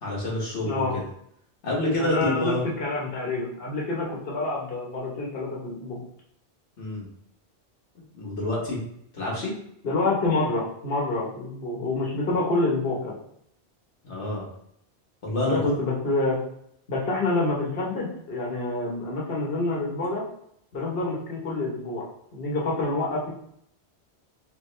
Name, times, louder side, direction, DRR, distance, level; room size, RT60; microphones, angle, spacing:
voice 1, 0.0-0.8 1.6-2.6 6.8-7.1 8.1-8.8 9.1-9.5 14.0-14.5 15.2-15.7 19.4-19.5, left 2 dB, 85° left, -4 dB, 1.6 m, -27 dB
voice 2, 0.6-0.9 2.0-6.0 9.8-13.1 15.4-16.4 16.9-20.2 20.7-22.0 22.3-23.3, left 2 dB, 60° left, -4 dB, 1.3 m, -27 dB
3.6 x 3.5 x 3.2 m, 0.70 s
omnidirectional pair, 1.2 m